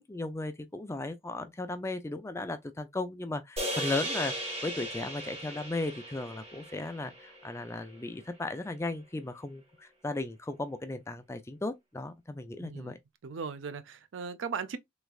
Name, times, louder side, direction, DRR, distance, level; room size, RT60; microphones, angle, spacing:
voice 1, 0.0-13.0, left 2 dB, 15° left, 0.4 m, -36 dB
sound 1, 3.6-8.0, right 1 dB, 35° right, 1.3 m, -37 dB
voice 2, 12.6-12.9 13.2-14.8, right 5 dB, 90° right, 0.5 m, -37 dB
3.4 x 3.1 x 2.3 m
head